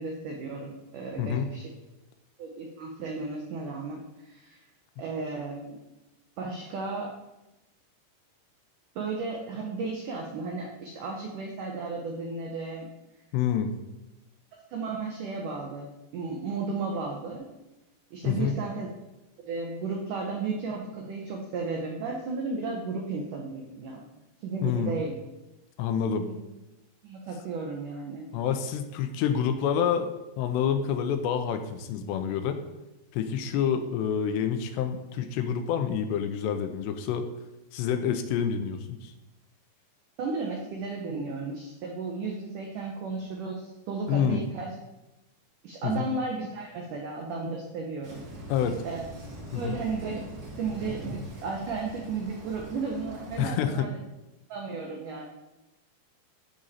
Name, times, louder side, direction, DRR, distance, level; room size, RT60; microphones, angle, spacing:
voice 1, 0.0-1.7 2.4-4.6 5.0-5.8 6.4-7.1 8.9-12.9 14.7-17.5 18.1-18.9 19.5-24.0 24.4-25.2 26.2-26.3 27.0-28.3 40.2-44.7 45.6-48.2 48.8-49.0 49.5-50.2 50.6-53.9 54.5-55.2, right 4 dB, 85° right, 0 dB, 1.8 m, -34 dB
voice 2, 1.2-1.5 13.3-13.7 18.2-18.6 24.6-24.9 25.8-26.3 28.3-32.6 33.1-37.3 37.7-39.1 44.1-44.4 45.8-46.1 48.5-48.8 49.5-49.8 53.4-53.9, left 8 dB, 80° left, 7 dB, 2.7 m, -28 dB
sound 1, 48.0-53.4, equal, 65° right, 1.0 m, -42 dB
12.0 x 5.1 x 4.2 m, 0.99 s
omnidirectional pair, 5.0 m